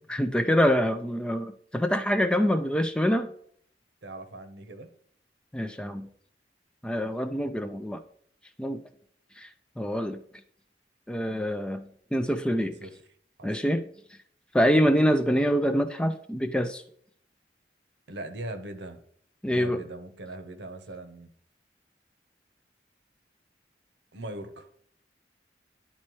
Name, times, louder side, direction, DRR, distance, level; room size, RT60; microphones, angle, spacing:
voice 1, 0.1-3.3 5.5-6.1 6.8-8.0 8.6-8.8 9.4-9.5 9.8-10.2 11.1-11.8 12.1-12.7 13.4-13.8 14.5-16.8 19.4-19.8, equal, 5° left, 8 dB, 0.3 m, -25 dB
voice 2, 4.0-4.9 12.6-12.9 13.4-13.5 18.1-19.0 19.4-21.3 24.1-24.7, right 1 dB, 80° right, 9 dB, 0.9 m, -40 dB
11.0 x 4.2 x 3.1 m, 0.62 s
head